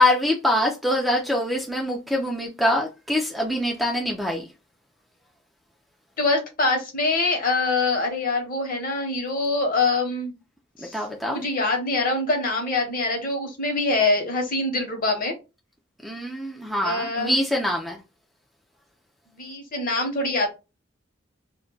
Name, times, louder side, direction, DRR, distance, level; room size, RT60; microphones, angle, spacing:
voice 1, 0.0-4.5 10.8-11.4 16.0-18.0, left 1 dB, ahead, 0.4 m, -24 dB
voice 2, 6.2-10.3 10.8-11.0 11.3-15.3 16.8-17.4 19.4-20.5, left 3 dB, 45° left, 0.9 m, -24 dB
2.2 x 2.1 x 3.7 m
head